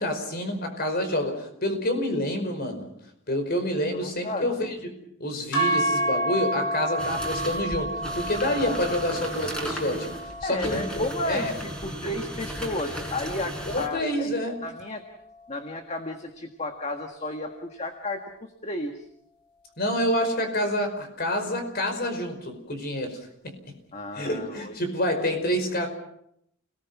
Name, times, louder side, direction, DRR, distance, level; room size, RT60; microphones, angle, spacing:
voice 1, 0.0-2.9 3.3-4.8 5.2-11.5 13.7-14.6 19.8-23.6 24.2-25.9, left 1 dB, 50° left, 6 dB, 5.2 m, -28 dB
voice 2, 3.9-4.7 8.6-8.9 10.4-15.0 15.5-19.1 23.9-24.8, left 2 dB, 35° left, 4 dB, 1.7 m, -33 dB
sound 1, 5.5-13.8, right 1 dB, 65° left, 6.2 m, -31 dB
sound 2, 7.0-13.9, equal, 5° left, 4.1 m, -36 dB
29.5 x 19.5 x 6.1 m, 0.74 s
head